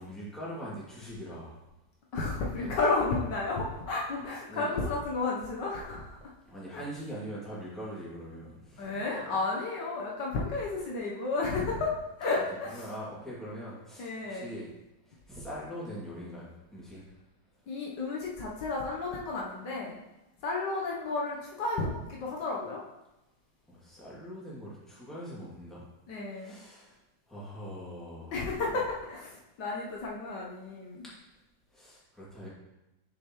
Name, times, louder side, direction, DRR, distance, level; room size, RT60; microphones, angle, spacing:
voice 1, 0.0-1.6 2.4-2.7 4.5-4.8 6.5-8.9 9.1-9.3 12.3-12.4 12.7-14.7 15.1-16.5 16.7-17.0 23.7-25.8 26.3-27.0 27.3-28.8 31.7-32.5, equal, ahead, -8 dB, 2.1 m, -42 dB
voice 2, 2.1-6.2 6.7-6.8 8.8-12.8 14.0-14.5 17.7-20.0 20.4-22.8 26.1-26.5 28.3-31.0, left 3 dB, 70° left, -3 dB, 1.5 m, -32 dB
6.7 x 6.6 x 3.0 m, 0.96 s
omnidirectional pair, 2.0 m